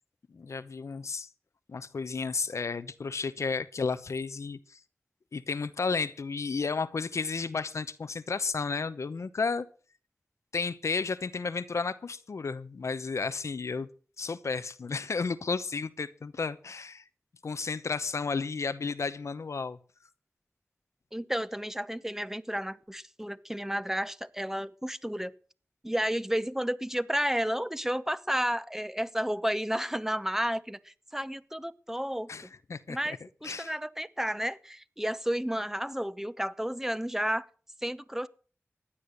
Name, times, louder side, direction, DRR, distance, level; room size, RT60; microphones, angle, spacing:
voice 1, 0.3-1.3 1.7-4.8 5.3-9.7 10.5-13.9 14.2-17.0 17.4-19.8 32.3-33.2 33.4-33.7, left 4 dB, 90° left, 0.8 m, -33 dB
voice 2, 21.1-25.3 25.8-32.3 32.9-37.5 37.8-38.3, equal, 10° right, 0.9 m, -32 dB
15.5 x 9.9 x 6.6 m
wide cardioid pair, 45°, 5 cm